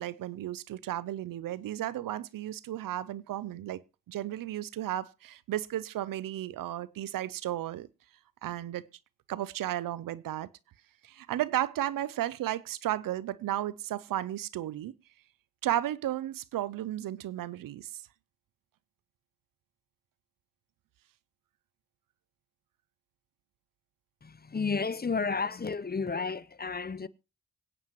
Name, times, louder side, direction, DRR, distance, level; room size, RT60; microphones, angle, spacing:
voice 1, 0.0-3.8 4.1-7.9 8.4-8.9 9.3-10.5 11.0-14.9 15.6-18.0, right 13 dB, 85° right, 0.6 m, -34 dB
voice 2, 24.2-27.1, left 4 dB, 30° left, 0.7 m, -32 dB
25.0 x 8.9 x 3.0 m
supercardioid pair, 45°, 32 cm